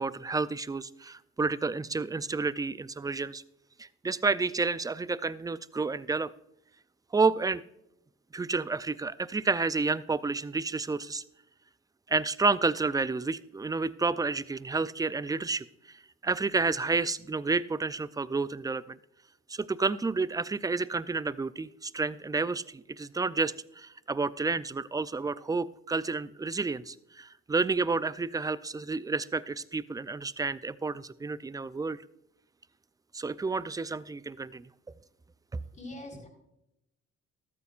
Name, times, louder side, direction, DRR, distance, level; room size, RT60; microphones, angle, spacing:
voice 1, 0.0-3.4 4.0-6.3 7.1-7.6 8.3-11.2 12.1-15.6 16.2-19.0 19.5-32.0 33.1-34.7, right 4 dB, 10° right, 17 dB, 0.4 m, -30 dB
voice 2, 35.5-36.3, left 1 dB, 25° left, 1 dB, 4.1 m, -44 dB
13.5 x 12.5 x 2.5 m, 0.83 s
cardioid pair, 90°, 30 cm